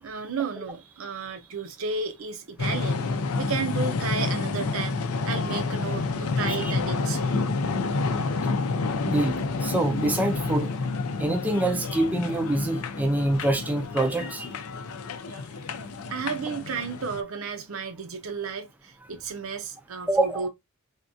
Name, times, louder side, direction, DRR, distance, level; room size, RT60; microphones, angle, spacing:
voice 1, 0.0-3.1 3.4-5.0 5.2-7.4 15.3-15.4 16.1-20.5, right 5 dB, 70° right, 0.6 m, -33 dB
sound 1, 2.6-17.2, left 3 dB, 80° left, 0.5 m, -29 dB
voice 2, 9.0-10.7 11.2-14.5 20.1-20.5, right 1 dB, 5° right, 0.4 m, -25 dB
3.6 x 2.3 x 2.6 m
head